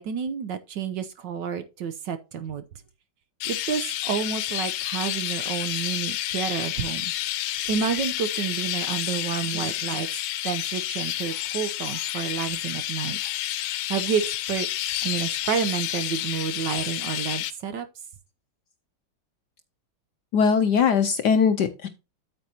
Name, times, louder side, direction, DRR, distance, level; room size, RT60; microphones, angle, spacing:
voice 1, 0.0-2.6 3.4-7.1 7.7-10.1 10.4-13.2 13.9-14.7 15.0-17.9, right 7 dB, 70° right, 1.2 m, -30 dB
Chirp tweet, 3.4-17.5, left 14 dB, 90° left, 1.6 m, -30 dB
voice 2, 20.3-21.9, left 6 dB, 70° left, 1.0 m, -20 dB
8.9 x 8.3 x 2.7 m
omnidirectional pair, 2.4 m